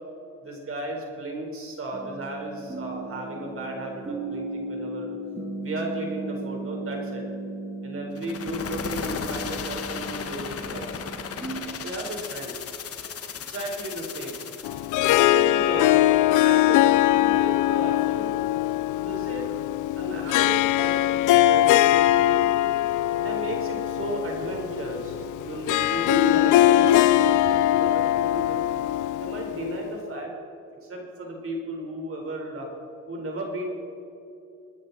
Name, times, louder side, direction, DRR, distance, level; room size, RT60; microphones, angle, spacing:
voice 1, 0.4-5.2 5.6-7.2 7.8-11.0 11.8-12.6 13.5-14.4 15.3-16.1 16.4-18.5 18.9-19.5 19.9-22.5 23.1-28.6 29.2-30.3 30.8-32.7 33.1-33.7, right 1 dB, 45° right, 0 dB, 4.7 m, -34 dB
sound 1, 1.9-11.6, right 2 dB, 20° right, 2.9 m, -36 dB
sound 2, 8.2-15.0, left 6 dB, 50° left, 1.3 m, -35 dB
Harp, 14.6-29.9, left 14 dB, 85° left, 0.5 m, -21 dB
27.5 x 10.0 x 4.3 m, 2.8 s
cardioid pair, 90°, 30 cm